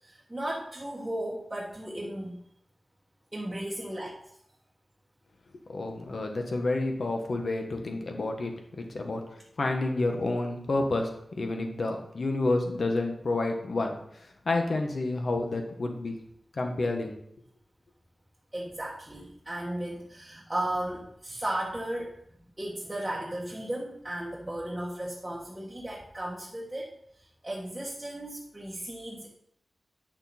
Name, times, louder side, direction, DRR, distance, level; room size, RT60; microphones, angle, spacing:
voice 1, 0.0-2.4 3.3-4.2 18.5-22.1 22.6-29.3, right 1 dB, 15° right, -5 dB, 1.6 m, -35 dB
voice 2, 5.7-9.2 9.6-11.1 11.4-14.0 14.4-16.2 16.6-17.2, left 2 dB, 65° left, 3 dB, 1.5 m, -29 dB
8.9 x 6.3 x 4.4 m, 0.72 s
wide cardioid pair, 85°, 0 cm